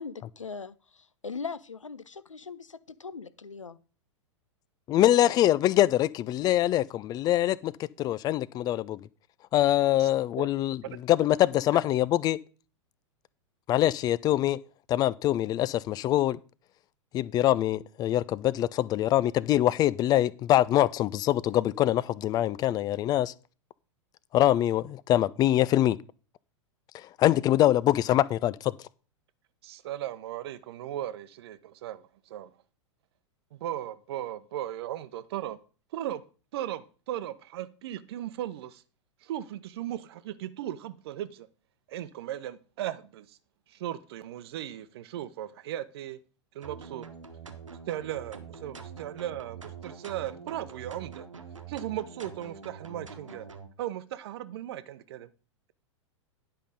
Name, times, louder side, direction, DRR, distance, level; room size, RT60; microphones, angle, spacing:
voice 1, 0.0-3.8, left 5 dB, 85° left, 0.6 m, -40 dB
voice 2, 4.9-7.7 8.0-9.0 9.5-12.4 13.7-14.6 14.9-16.4 17.1-23.3 24.3-26.0 26.9-28.7, left 13 dB, 25° left, 0.3 m, -24 dB
voice 3, 29.6-32.5 33.5-35.6 35.9-36.2 36.5-38.8 39.2-41.5 41.9-43.4 43.7-46.2 46.5-47.1 47.9-51.3 51.7-53.5 53.8-55.3, right 12 dB, 55° right, 0.8 m, -37 dB
sound 1, 46.6-53.7, right 5 dB, 85° right, 1.2 m, -45 dB
10.0 x 5.6 x 5.1 m
figure-of-eight pair, 95°, 16 cm